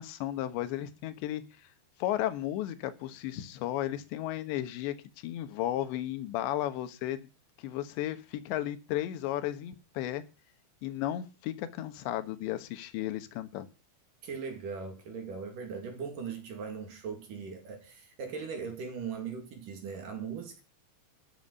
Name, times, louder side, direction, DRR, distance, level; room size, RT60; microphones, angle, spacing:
voice 1, 0.0-1.7 2.0-7.3 7.6-10.2 10.8-13.7, left 13 dB, 75° left, 3.4 m, -34 dB
voice 2, 14.2-20.6, right 6 dB, 50° right, 3.7 m, -39 dB
13.0 x 8.9 x 6.8 m
omnidirectional pair, 5.4 m